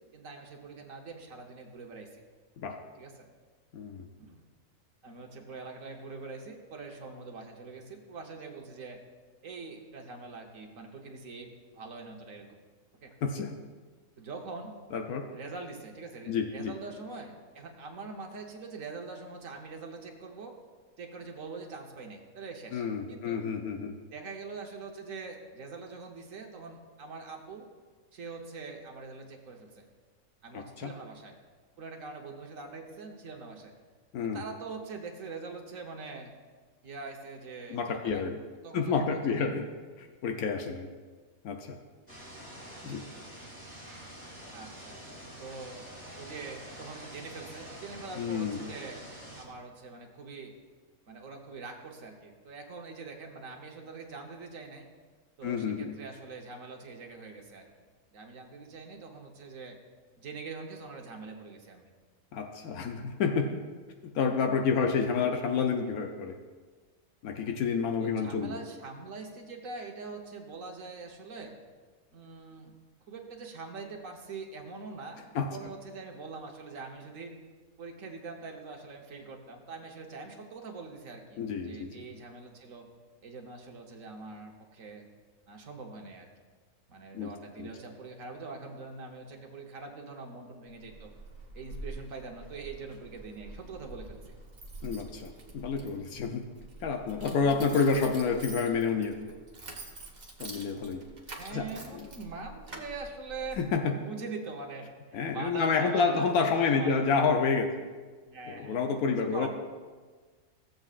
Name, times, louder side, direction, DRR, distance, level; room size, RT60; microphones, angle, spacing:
voice 1, 0.0-2.2 3.0-3.3 4.2-4.4 5.0-9.0 9.4-12.6 13.0-13.1 14.2-14.8 15.3-20.6 21.0-23.4 24.1-27.7 28.1-29.8 30.4-31.3 31.8-33.7 34.2-36.3 36.8-38.2 38.6-39.5 44.5-45.0 45.4-45.9 46.1-49.0 49.4-50.5 51.1-54.9 55.4-57.7 58.1-59.8 60.2-61.9 68.0-71.5 72.1-72.7 73.1-77.3 77.8-82.9 83.2-85.1 85.5-86.3 86.9-91.1 91.5-94.3 101.4-103.6 103.9-104.8 105.1-107.1 108.3-108.8 109.1-109.5, right 4 dB, 65° right, 2 dB, 1.5 m, -43 dB
voice 2, 3.7-4.1 13.2-13.6 14.9-15.3 16.3-16.7 22.7-24.0 30.5-30.9 34.1-34.4 37.7-38.4 38.7-39.7 40.0-40.9 41.4-41.8 42.8-43.0 48.2-48.6 55.4-55.9 62.3-63.6 64.1-66.4 67.2-68.6 75.3-75.5 81.4-82.0 87.1-87.3 87.6-87.7 94.8-96.4 96.8-99.2 100.4-101.0 101.5-101.6 101.9-102.1 103.6-103.9 105.1-107.7 108.5-109.5, left 5 dB, 80° left, 4 dB, 1.2 m, -29 dB
sound 1, 42.1-49.4, equal, 10° left, 2.0 m, -46 dB
Keys jangling, 90.7-103.8, right 2 dB, 30° right, 1.1 m, -46 dB
15.5 x 7.8 x 2.5 m, 1.5 s
omnidirectional pair, 1.5 m